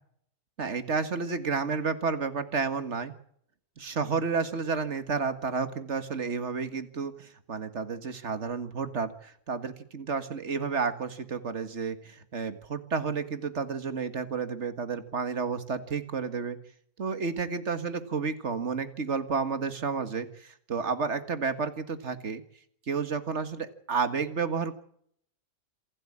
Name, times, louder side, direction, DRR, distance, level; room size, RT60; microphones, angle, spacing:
voice 1, 0.6-3.1 3.8-16.6 17.0-22.4 22.9-24.8, right 5 dB, 55° right, 10 dB, 2.0 m, -31 dB
27.0 x 12.0 x 8.7 m, 0.66 s
omnidirectional pair, 1.4 m